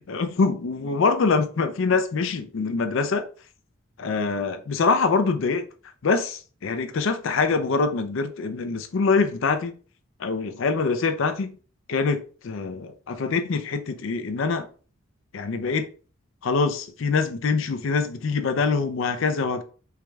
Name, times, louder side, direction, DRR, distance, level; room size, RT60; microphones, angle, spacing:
voice 1, 0.1-3.2 4.0-5.7 6.0-9.7 10.2-11.6 11.9-14.7 15.3-15.9 16.4-19.6, left 4 dB, 65° left, 0.4 m, -24 dB
4.6 x 3.1 x 2.3 m
head